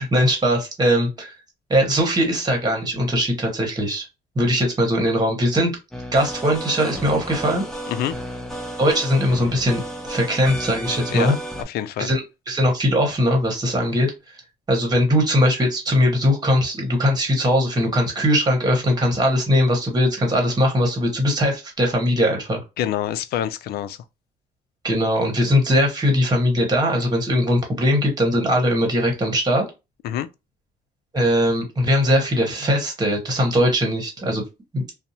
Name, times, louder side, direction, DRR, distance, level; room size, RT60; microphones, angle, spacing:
voice 1, 0.0-1.3 1.7-4.1 4.4-5.7 6.1-7.7 8.8-9.8 10.1-11.3 12.0-12.2 12.5-14.1 14.7-22.6 24.8-29.6 31.1-34.4 34.7-34.8, equal, 25° right, 1.2 m, -20 dB
sound 1, 5.9-11.6, right 1 dB, 5° left, 0.5 m, -32 dB
voice 2, 11.7-12.1 22.8-24.0 30.0-30.3, left 11 dB, 70° left, 0.4 m, -26 dB
2.6 x 2.0 x 2.7 m
cardioid pair, 110°, 17 cm